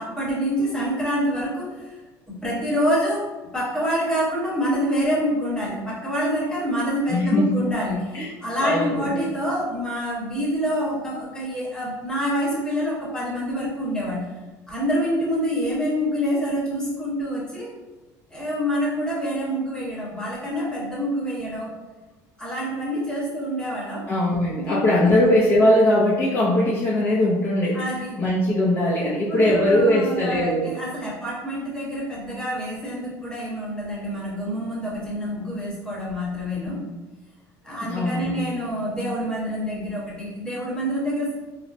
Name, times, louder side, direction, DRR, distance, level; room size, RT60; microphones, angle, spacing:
voice 1, 0.0-2.0 2.3-3.3 3.5-14.3 14.7-17.7 18.3-21.7 22.4-24.1 24.6-25.1 27.7-28.1 29.0-36.8 37.6-41.3, equal, 10° left, -5 dB, 1.0 m, -26 dB
voice 2, 7.1-7.5 8.1-8.3 8.6-9.2 24.1-27.9 28.2-30.7 37.8-38.5, left 1 dB, 35° left, -6 dB, 0.5 m, -20 dB
4.0 x 2.0 x 2.5 m, 1.2 s
cardioid pair, 150°, 8 cm